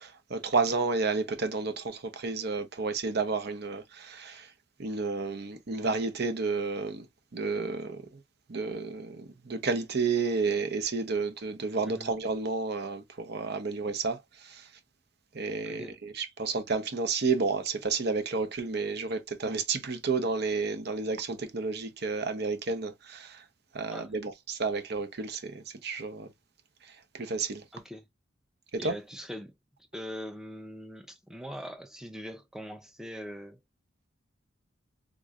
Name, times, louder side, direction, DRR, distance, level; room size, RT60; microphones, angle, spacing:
voice 1, 0.0-4.5 4.8-7.1 7.3-8.2 8.5-14.7 15.3-23.4 23.7-26.3 27.1-27.6 28.7-28.9, right 4 dB, 55° right, 0.7 m, -31 dB
voice 2, 15.6-16.0 23.9-24.1 27.7-28.1 28.8-29.5 29.9-33.6, equal, 5° right, 0.5 m, -41 dB
3.7 x 3.0 x 2.4 m
head